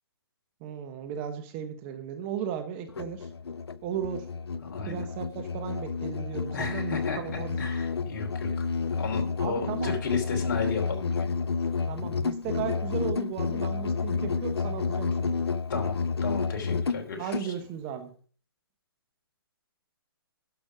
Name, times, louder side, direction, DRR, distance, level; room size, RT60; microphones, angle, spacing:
voice 1, 0.6-3.3 3.8-4.3 4.9-7.6 9.4-10.0 11.9-15.4 17.2-18.1, right 9 dB, 25° right, 8 dB, 1.1 m, -36 dB
Musical instrument, 2.9-17.5, left 5 dB, 90° left, 0.5 m, -30 dB
voice 2, 4.6-5.0 6.5-11.3 15.7-17.5, left 5 dB, 45° left, 3 dB, 3.1 m, -34 dB
11.5 x 6.2 x 4.8 m, 0.42 s
hypercardioid pair, 145°, 13 cm